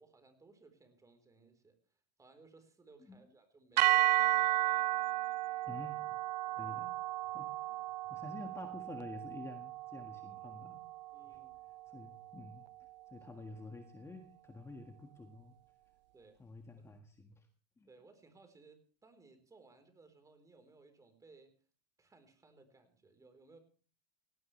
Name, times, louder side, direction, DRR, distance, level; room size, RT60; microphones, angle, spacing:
voice 1, 0.0-1.8 2.2-4.7 6.4-6.7 7.7-7.8 11.1-11.6 13.4-13.5 16.1-16.4 16.8-16.9 17.8-21.5 22.0-23.6, right 3 dB, 15° right, 7 dB, 3.9 m, -62 dB
sound 1, 3.8-12.0, right 17 dB, 80° right, 0.6 m, -34 dB
voice 2, 5.7-6.2 6.6-6.9 7.3-7.5 8.1-10.8 11.3-11.4 11.9-12.6 13.1-15.6 16.4-17.5 17.8-17.9, left 3 dB, 10° left, 4 dB, 1.7 m, -49 dB
18.0 x 17.0 x 3.2 m, 0.41 s
hypercardioid pair, 115°, 21 cm